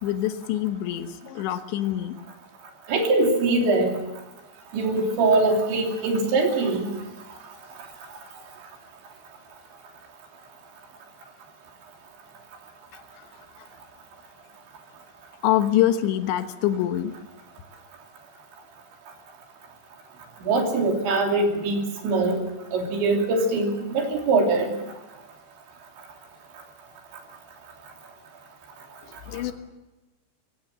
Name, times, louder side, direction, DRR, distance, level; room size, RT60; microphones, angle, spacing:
voice 1, 0.0-2.2 15.4-17.1 29.3-29.5, left 12 dB, 85° left, 9 dB, 3.4 m, -25 dB
voice 2, 2.9-4.0 4.7-6.9 20.4-22.4 22.7-24.7, right 3 dB, 90° right, 2 dB, 5.4 m, -22 dB
21.5 x 17.0 x 7.5 m, 1.1 s
omnidirectional pair, 5.1 m